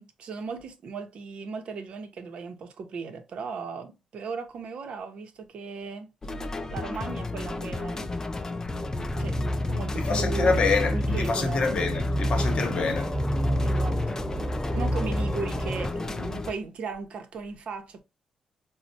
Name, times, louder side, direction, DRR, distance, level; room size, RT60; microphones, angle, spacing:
voice 1, 0.0-6.1 6.7-8.2 9.2-9.4 9.7-11.9 13.6-14.3 14.7-18.0, right 4 dB, 65° right, 0.6 m, -37 dB
sound 1, 6.2-16.5, left 2 dB, 25° left, 0.3 m, -33 dB
sound 2, 8.7-15.9, equal, 5° right, 0.9 m, -29 dB
voice 2, 10.0-13.2, left 4 dB, 50° left, 0.9 m, -26 dB
4.1 x 2.0 x 2.6 m
cardioid pair, 110°, 2 cm